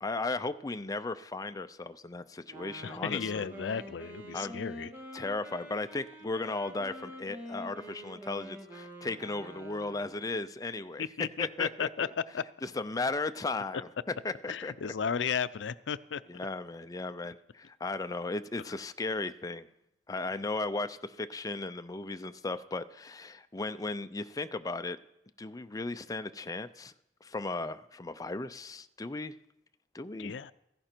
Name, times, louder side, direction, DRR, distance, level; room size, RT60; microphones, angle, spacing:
voice 1, 0.0-3.5 4.3-4.6 5.1-11.0 11.4-12.1 12.6-13.9 14.2-14.9 16.3-19.7 20.1-25.0 25.4-26.9 27.2-29.4 29.9-30.3, left 3 dB, 20° left, 10 dB, 0.5 m, -36 dB
Wind instrument woodwind instrument, 2.4-10.3, equal, 15° right, 2.0 m, -46 dB
voice 2, 2.8-4.9 11.0-12.1 12.3-12.4 14.5-16.2 30.2-30.5, left 7 dB, 85° left, 16 dB, 0.5 m, -34 dB
16.0 x 14.5 x 4.5 m, 0.83 s
head